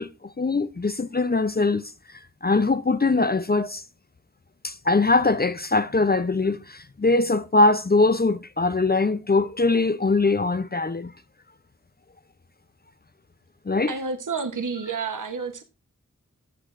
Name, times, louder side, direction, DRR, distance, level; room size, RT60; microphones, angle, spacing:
voice 1, 0.0-1.8 2.1-3.8 4.6-11.1 13.7-13.9, left 3 dB, 30° left, 0.5 m, -22 dB
voice 2, 13.9-15.6, right 5 dB, 75° right, 1.0 m, -30 dB
14.5 x 8.0 x 2.5 m
wide cardioid pair, 50°, 31 cm